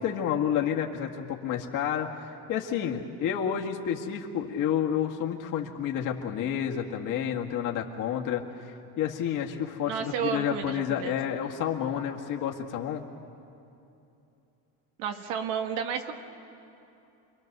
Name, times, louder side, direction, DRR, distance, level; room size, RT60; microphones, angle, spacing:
voice 1, 0.0-13.0, left 9 dB, 50° left, 1 dB, 2.0 m, -30 dB
voice 2, 9.9-11.3 15.0-16.1, right 7 dB, 80° right, 5 dB, 1.8 m, -32 dB
27.5 x 22.5 x 6.7 m, 2.8 s
cardioid pair, 145°, 41 cm